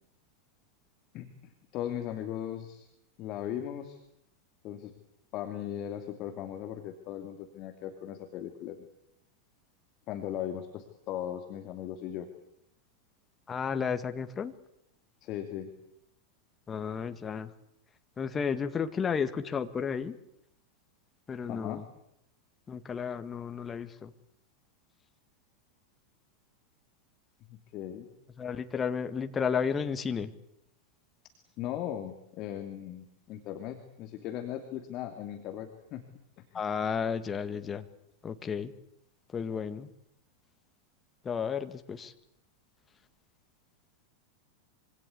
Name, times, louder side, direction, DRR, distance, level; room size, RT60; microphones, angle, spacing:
voice 1, 1.1-2.9 3.2-4.0 4.6-4.9 5.3-8.8 10.1-12.3 15.2-15.7 21.5-21.8 27.5-28.1 31.6-36.0 36.5-36.6, left 11 dB, 40° left, 5 dB, 2.6 m, -38 dB
voice 2, 13.5-14.5 16.7-17.5 18.2-20.2 21.3-21.8 22.7-24.1 28.4-30.3 36.5-37.9 38.2-38.7 39.3-39.9 41.2-42.1, left 6 dB, 20° left, 9 dB, 1.8 m, -32 dB
26.0 x 24.0 x 8.4 m, 0.79 s
figure-of-eight pair, 90°, 0 cm